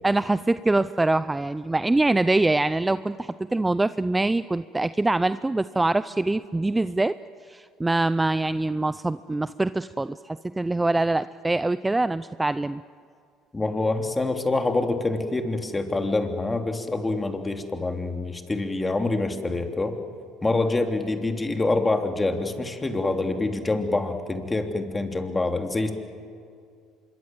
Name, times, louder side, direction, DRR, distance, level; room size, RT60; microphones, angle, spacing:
voice 1, 0.0-7.1 7.5-12.8, right 2 dB, 15° right, 14 dB, 0.5 m, -24 dB
voice 2, 13.5-20.0 20.4-25.9, left 2 dB, 20° left, 5 dB, 3.2 m, -26 dB
26.0 x 23.0 x 7.8 m, 2.3 s
supercardioid pair, 85°, 0 cm